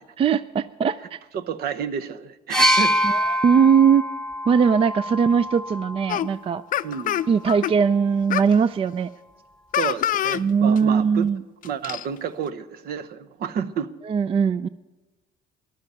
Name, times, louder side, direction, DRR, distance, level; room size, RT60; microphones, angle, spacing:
voice 1, 0.2-1.2 3.0-4.0 4.5-6.6 7.3-9.1 10.3-11.4 14.1-14.7, right 6 dB, 35° right, 16 dB, 0.4 m, -20 dB
voice 2, 1.3-3.0 6.8-7.2 9.7-11.3 11.6-13.9, right 7 dB, 65° right, 11 dB, 0.9 m, -30 dB
sound 1, 2.5-6.3 7.4-7.5, equal, 5° left, 1.1 m, -24 dB
sound 2, 6.1-6.3 6.7-7.7 8.3-8.5 9.7-10.4 10.8-10.9 11.6-12.1, left 12 dB, 55° left, 0.5 m, -25 dB
14.5 x 11.5 x 6.8 m, 1.2 s
cardioid pair, 110°, 17 cm